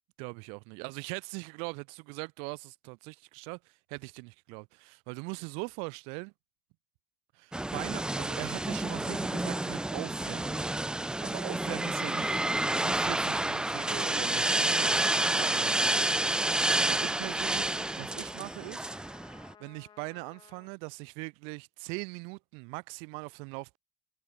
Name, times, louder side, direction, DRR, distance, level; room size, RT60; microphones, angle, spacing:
voice 1, 0.2-6.3 7.3-10.6 11.2-12.4 12.8-18.9 19.6-23.8, right 36 dB, 80° right, 1.3 m, -41 dB
sound 1, 7.5-19.5, right 1 dB, 10° right, 0.5 m, -29 dB
Trumpet, 13.5-20.7, left 8 dB, 50° left, 6.0 m, -56 dB
hypercardioid pair, 55°, 9 cm